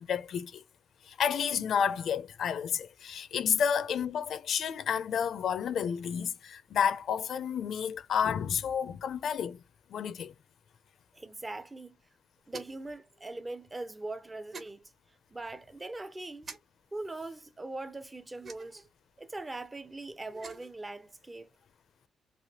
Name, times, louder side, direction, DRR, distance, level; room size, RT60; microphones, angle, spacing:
voice 1, 0.1-0.6 1.0-9.6 9.9-10.3, left 7 dB, 65° left, 0.5 m, -30 dB
voice 2, 11.1-12.0 12.5-16.5 16.9-18.9 19.2-21.5, right 2 dB, 20° right, 0.5 m, -41 dB
sound 1, 12.5-12.9 14.5-14.7 16.4-16.6 18.4-18.9 20.2-20.7, right 4 dB, 45° right, 0.9 m, -46 dB
3.3 x 2.5 x 2.8 m
cardioid pair, 110°, 0 cm